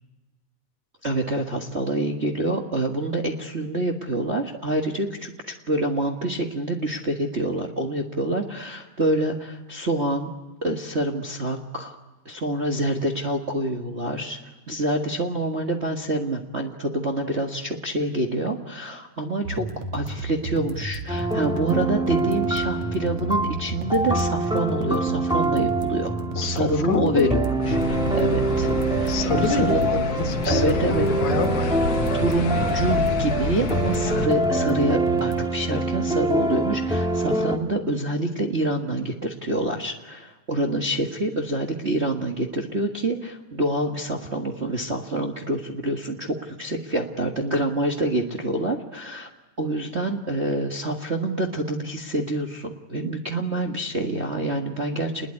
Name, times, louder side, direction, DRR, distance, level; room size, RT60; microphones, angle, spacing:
voice 1, 1.0-10.3 10.6-12.0 12.2-14.4 14.7-19.7 19.9-29.8 30.5-31.1 32.1-49.3 49.6-55.3, right 1 dB, 30° right, 1 dB, 1.3 m, -26 dB
sound 1, 19.4-35.4, right 2 dB, 70° right, 3.0 m, -33 dB
sound 2, 21.1-37.6, right 2 dB, ahead, 1.3 m, -25 dB
voice 2, 26.4-27.5 29.1-31.8, left 6 dB, 80° left, 6 dB, 3.0 m, -27 dB
sound 3, 27.6-34.3, left 6 dB, 60° left, 2.7 m, -30 dB
28.5 x 21.0 x 9.8 m, 1.1 s
omnidirectional pair, 3.4 m